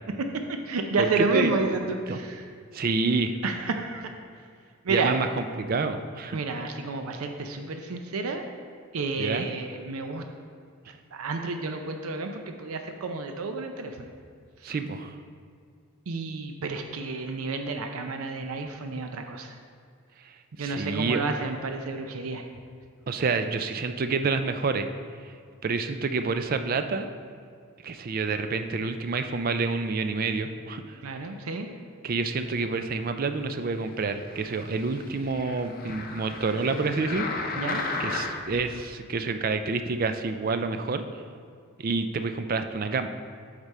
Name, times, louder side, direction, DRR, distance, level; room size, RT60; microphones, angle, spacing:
voice 1, 0.2-2.5 3.4-4.1 4.8-5.2 6.3-8.4 8.9-10.2 11.1-14.1 14.6-14.7 16.1-19.6 20.6-22.4 31.0-31.7 37.5-37.8, right 3 dB, 90° right, 5 dB, 0.5 m, -30 dB
voice 2, 1.0-1.6 2.1-2.2 2.7-3.4 4.9-6.4 9.2-9.5 10.9-11.0 14.6-15.1 20.2-21.2 23.1-24.9 25.6-27.1 27.8-31.0 32.0-37.3 38.0-41.0 41.8-43.1, right 4 dB, 40° right, 8 dB, 0.4 m, -28 dB
sound 1, 34.0-38.6 39.2-39.3, left 3 dB, 40° left, 0.6 m, -35 dB
8.0 x 5.2 x 4.2 m, 2.2 s
head